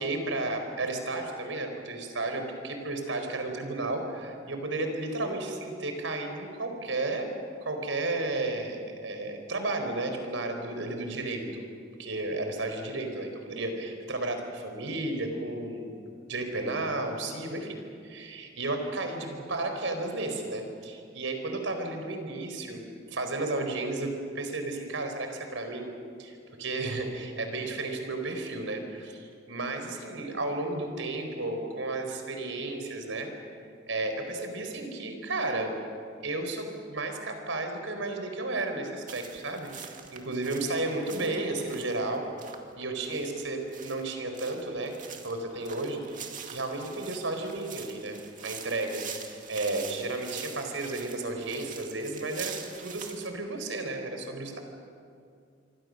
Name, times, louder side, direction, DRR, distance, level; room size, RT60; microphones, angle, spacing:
voice 1, 0.0-7.3 7.6-11.6 12.0-15.9 16.3-17.8 18.0-22.8 23.1-25.9 26.2-33.3 33.9-35.7 36.2-42.2 42.8-52.5 52.8-54.6, right 2 dB, 90° right, 5 dB, 4.5 m, -33 dB
sound 1, 39.1-53.3, right 7 dB, 45° right, 2.3 m, -44 dB
27.0 x 24.0 x 6.6 m, 2.3 s
head